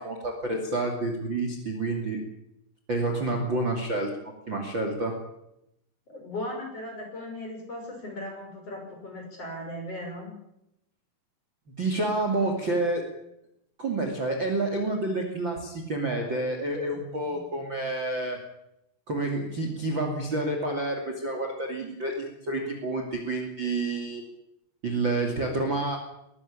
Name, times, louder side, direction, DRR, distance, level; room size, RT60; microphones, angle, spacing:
voice 1, 0.0-2.2 2.9-4.1 4.5-5.1 11.8-13.0 13.8-18.4 19.1-24.2 24.8-26.0, right 2 dB, 30° right, 3 dB, 2.8 m, -29 dB
voice 2, 6.1-10.3 16.9-17.0 17.3-17.4, left 1 dB, 35° left, 2 dB, 7.0 m, -37 dB
21.0 x 15.0 x 8.8 m, 0.81 s
omnidirectional pair, 4.9 m